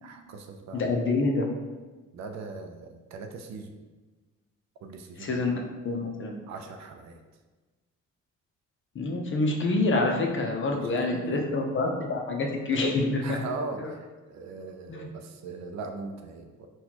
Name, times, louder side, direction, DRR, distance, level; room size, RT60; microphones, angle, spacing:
voice 1, 0.0-0.9 2.1-3.8 4.8-5.4 6.5-7.2 10.7-11.4 13.2-16.7, right 3 dB, 65° right, 5 dB, 0.5 m, -40 dB
voice 2, 0.7-1.5 5.2-5.6 5.8-6.4 8.9-13.4 13.8-13.9 14.9-15.1, left 2 dB, 40° left, 2 dB, 0.6 m, -27 dB
4.1 x 2.3 x 2.9 m, 1.3 s
cardioid pair, 90°, 30 cm